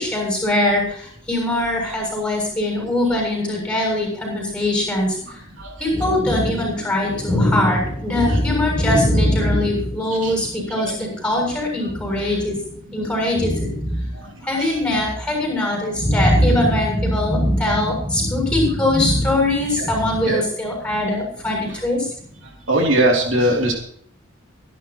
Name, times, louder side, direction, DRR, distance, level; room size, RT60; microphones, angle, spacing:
voice 1, 0.0-5.2 5.8-12.6 12.9-14.1 14.5-22.1, left 1 dB, 5° left, 0 dB, 7.1 m, -21 dB
voice 2, 22.7-23.7, right 1 dB, 70° right, 0 dB, 2.9 m, -19 dB
23.5 x 11.0 x 3.0 m, 0.64 s
head